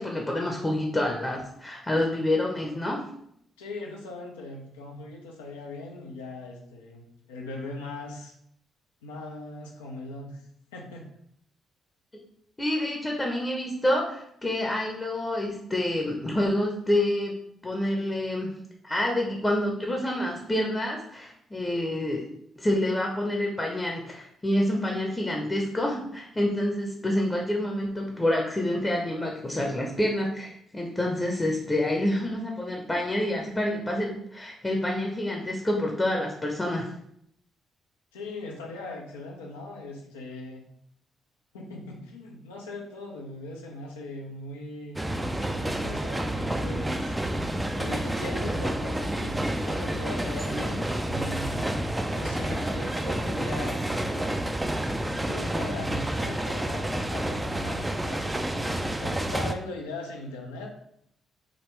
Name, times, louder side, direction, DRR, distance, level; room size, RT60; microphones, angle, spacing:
voice 1, 0.0-3.0 12.6-17.3 17.6-18.5 18.8-22.3 22.6-36.9, left 1 dB, 20° left, 0 dB, 0.7 m, -27 dB
voice 2, 3.6-8.3 9.0-10.4 10.7-11.1 38.1-40.7 41.5-47.1 47.7-54.4 55.1-60.8, left 2 dB, 85° left, 0 dB, 0.5 m, -40 dB
sound 1, 45.0-59.5, right 1 dB, 15° right, 0.4 m, -29 dB
3.6 x 2.2 x 3.1 m, 0.71 s
hypercardioid pair, 45°, 0 cm